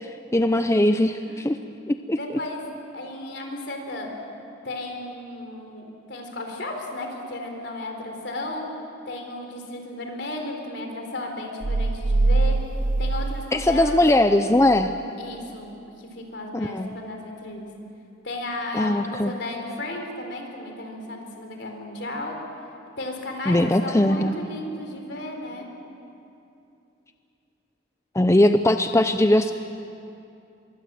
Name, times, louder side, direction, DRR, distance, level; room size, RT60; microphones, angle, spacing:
voice 1, 0.0-1.6 1.9-2.2 13.5-15.0 16.5-16.9 18.7-19.3 23.5-24.4 28.1-29.5, left 1 dB, 15° left, 8 dB, 0.5 m, -20 dB
voice 2, 2.1-2.6 2.9-4.1 4.6-8.7 9.1-12.6 13.0-14.0 15.2-17.7 18.2-22.4 23.0-25.7, left 1 dB, 65° left, 3 dB, 4.0 m, -34 dB
sound 1, 11.6-14.2 14.5-14.6, right 2 dB, 65° right, 0.7 m, -23 dB
25.5 x 23.0 x 7.7 m, 2.7 s
head